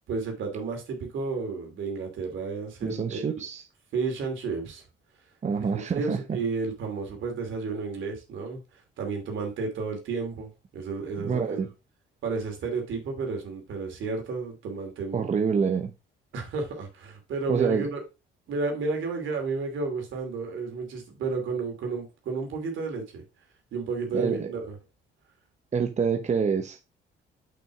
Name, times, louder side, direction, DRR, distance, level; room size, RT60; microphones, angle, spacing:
voice 1, 0.1-3.3 3.9-4.8 5.7-11.7 12.2-15.3 16.3-18.0 18.5-23.2 23.7-24.7, right 4 dB, 75° right, 2.8 m, -32 dB
voice 2, 2.8-3.6 5.4-6.4 11.2-11.7 15.1-15.9 17.5-17.9 24.1-24.5 25.7-26.8, right 6 dB, 35° right, 0.8 m, -27 dB
6.3 x 5.9 x 3.6 m
cardioid pair, 90°, 20 cm